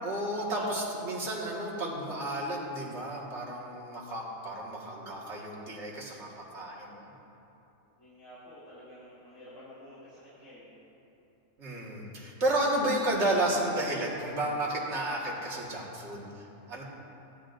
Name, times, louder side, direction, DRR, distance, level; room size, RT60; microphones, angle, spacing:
voice 1, 0.0-7.1 11.6-16.8, right 1 dB, 55° right, -4 dB, 2.0 m, -32 dB
voice 2, 8.0-10.8, equal, 65° left, -11 dB, 3.0 m, -49 dB
17.0 x 10.5 x 2.6 m, 3.0 s
omnidirectional pair, 1.4 m